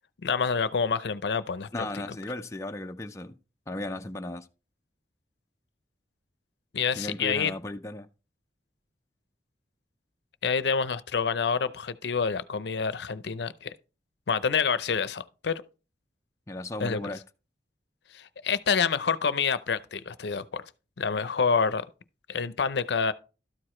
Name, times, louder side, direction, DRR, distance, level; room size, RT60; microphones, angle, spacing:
voice 1, 0.2-1.7 6.7-7.5 10.4-13.7 14.3-15.6 16.8-17.0 18.1-20.6 21.0-21.8 22.3-23.1, left 6 dB, 75° left, 0.5 m, -27 dB
voice 2, 1.7-3.4 3.7-4.5 6.9-8.1 16.5-17.2, left 1 dB, 15° left, 0.4 m, -35 dB
12.5 x 4.8 x 4.3 m
head